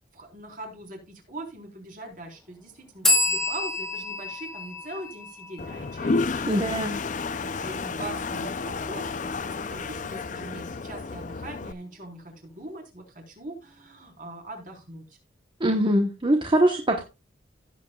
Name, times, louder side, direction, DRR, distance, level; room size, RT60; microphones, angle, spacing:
voice 1, 0.1-6.8 7.1-15.0, right 1 dB, 45° right, 1 dB, 4.1 m, -41 dB
sound 1, 3.0-6.6, left 2 dB, ahead, 1.6 m, -28 dB
Toilet flush, 5.6-11.7, left 4 dB, 40° left, 0.5 m, -31 dB
voice 2, 6.5-7.0 15.6-17.0, right 1 dB, 25° right, 3 dB, 1.1 m, -22 dB
16.5 x 7.9 x 2.4 m, 0.26 s
head